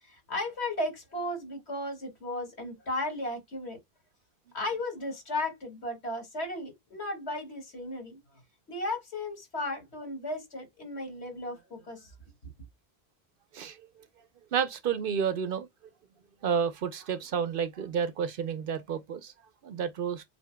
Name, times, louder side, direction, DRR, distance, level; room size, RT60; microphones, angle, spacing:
voice 1, 0.0-3.8 4.5-8.2 8.7-12.1, left 1 dB, 85° left, 2.4 m, -35 dB
voice 2, 14.5-15.7 16.4-19.3 19.6-20.2, right 7 dB, 60° right, 0.7 m, -30 dB
7.6 x 2.8 x 2.2 m
omnidirectional pair, 1.1 m